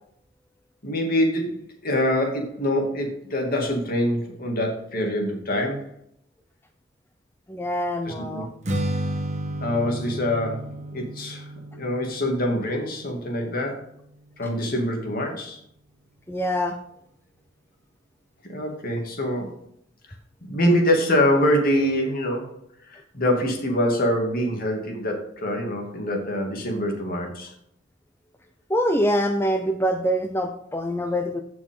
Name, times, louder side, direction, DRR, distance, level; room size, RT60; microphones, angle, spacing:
voice 1, 0.8-5.8 8.1-8.5 9.6-10.7 10.9-13.8 14.4-15.6 18.4-19.5 20.5-22.5 22.9-27.5, left 1 dB, 50° left, 2 dB, 2.6 m, -25 dB
voice 2, 7.5-8.5 16.3-16.8 28.7-31.4, equal, 10° left, 4 dB, 0.7 m, -24 dB
Strum, 8.6-14.9, right 1 dB, 40° right, 1.5 m, -33 dB
15.5 x 6.2 x 3.8 m, 0.71 s
head